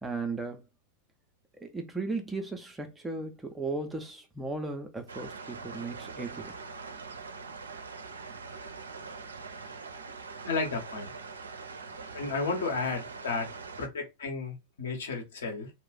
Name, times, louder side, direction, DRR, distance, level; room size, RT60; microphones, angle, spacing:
voice 1, 0.0-0.6 1.6-6.6, right 3 dB, 10° right, 0.5 m, -36 dB
sound 1, 5.1-13.9, right 4 dB, 70° right, 0.4 m, -43 dB
voice 2, 10.4-11.1 12.1-13.5 13.8-15.7, left 4 dB, 65° left, 1.0 m, -33 dB
2.3 x 2.0 x 3.8 m
figure-of-eight pair, 90°, 0 cm